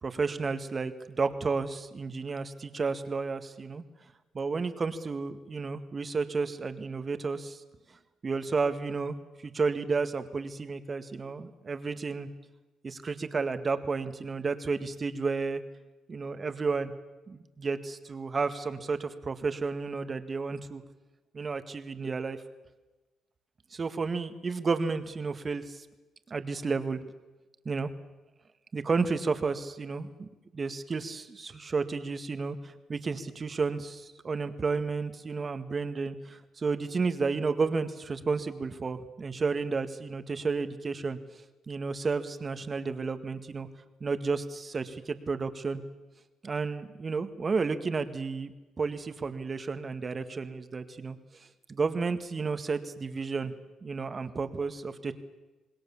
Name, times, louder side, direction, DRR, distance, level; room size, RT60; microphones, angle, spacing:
voice 1, 0.0-3.8 4.3-7.6 8.2-9.2 9.4-12.3 12.8-15.6 16.1-16.9 17.3-20.8 21.3-22.4 23.7-25.9 26.3-27.0 27.7-27.9 28.7-30.3 30.5-41.2 41.7-43.7 44.0-45.8 46.4-48.5 48.8-51.2 51.7-53.5 53.8-55.1, right 4 dB, 35° right, 9 dB, 1.9 m, -32 dB
26.5 x 20.5 x 7.3 m, 1.2 s
cardioid pair, 90°, 0 cm